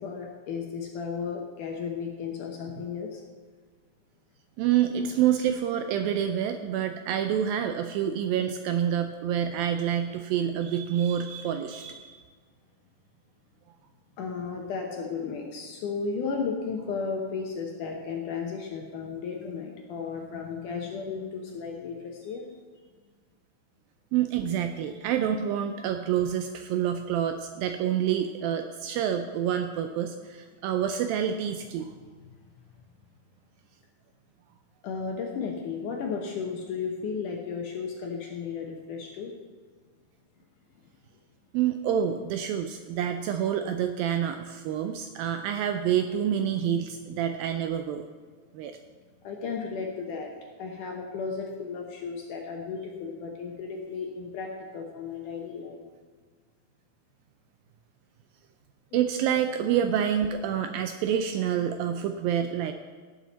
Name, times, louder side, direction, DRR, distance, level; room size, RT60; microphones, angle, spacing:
voice 1, 0.0-3.2 14.2-22.5 32.5-32.6 34.8-39.3 49.2-50.3 50.6-55.8 58.9-59.0, left 5 dB, 70° left, 1 dB, 2.0 m, -34 dB
voice 2, 4.6-12.2 24.1-31.9 41.5-48.1 48.5-48.8 58.9-62.7, right 9 dB, 85° right, 7 dB, 2.1 m, -27 dB
17.5 x 7.6 x 4.1 m, 1.5 s
omnidirectional pair, 4.6 m